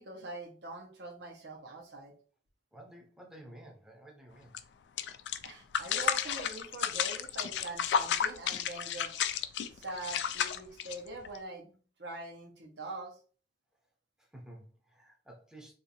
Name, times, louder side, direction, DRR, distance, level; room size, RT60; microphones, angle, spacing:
voice 1, 0.0-2.1 5.4-9.1 9.7-11.7 12.0-13.2, right 2 dB, 75° right, 0.9 m, -43 dB
voice 2, 2.7-4.5 9.8-9.9 14.2-15.7, right 1 dB, 5° right, 0.6 m, -52 dB
sound 1, 4.5-4.6 5.0-11.4, left 8 dB, 75° left, 0.3 m, -32 dB
2.6 x 2.5 x 4.2 m
head